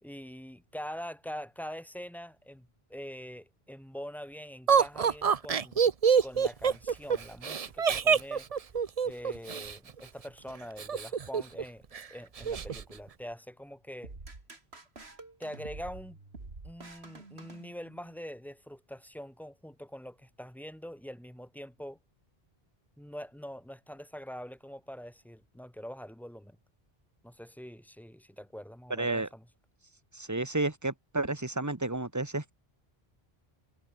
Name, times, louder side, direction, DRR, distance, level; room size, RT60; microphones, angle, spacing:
voice 1, 0.0-5.8 6.2-8.5 9.0-14.1 15.4-16.2 16.6-22.0 23.0-26.6 27.2-29.4, equal, ahead, 1.8 m, -44 dB
Laughter, 4.7-9.7 10.8-11.6 11.9-12.0 12.4-12.8, right 6 dB, 40° right, 0.7 m, -26 dB
sound 1, 14.0-18.2, right 3 dB, 85° right, 3.4 m, -48 dB
voice 2, 28.9-29.3 30.1-32.5, right 2 dB, 15° right, 1.8 m, -31 dB
omnidirectional pair, 1.0 m